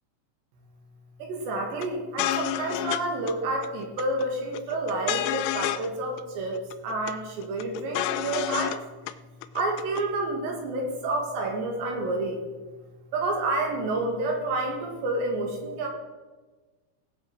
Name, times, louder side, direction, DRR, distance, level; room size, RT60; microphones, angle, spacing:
voice 1, 1.2-8.8 9.6-12.4 13.1-15.9, right 2 dB, 70° right, 1 dB, 3.9 m, -29 dB
sound 1, 1.8-1.9 2.2-3.0 3.3-3.4 3.6-4.3 4.5-5.9 6.2-6.3 6.5-7.1 7.4-8.8 9.1-9.2 9.4-10.0, left 13 dB, 85° left, 2.6 m, -29 dB
18.5 x 7.6 x 4.7 m, 1.3 s
omnidirectional pair, 5.6 m